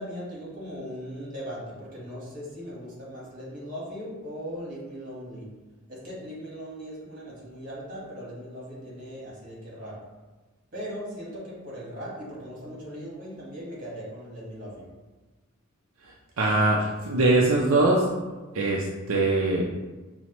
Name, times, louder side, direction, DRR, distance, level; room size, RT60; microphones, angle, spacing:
voice 1, 0.0-5.5 5.9-10.0 10.7-14.8, equal, 40° right, -5 dB, 1.4 m, -39 dB
voice 2, 16.4-18.1 18.5-19.6, right 2 dB, 80° right, -3 dB, 0.5 m, -22 dB
5.7 x 2.1 x 2.9 m, 1.2 s
head